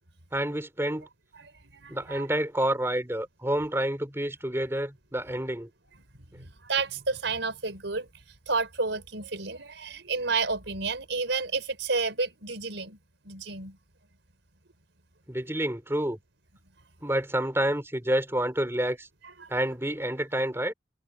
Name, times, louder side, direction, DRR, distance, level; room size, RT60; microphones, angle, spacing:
voice 1, 0.3-1.1 1.9-5.7 15.3-16.2 17.0-19.1 19.5-20.7, right 1 dB, 15° right, 3.9 m, -28 dB
voice 2, 1.4-2.3 6.4-8.1 8.5-13.0 13.2-13.8 19.4-19.5, right 4 dB, 70° right, 4.6 m, -31 dB
head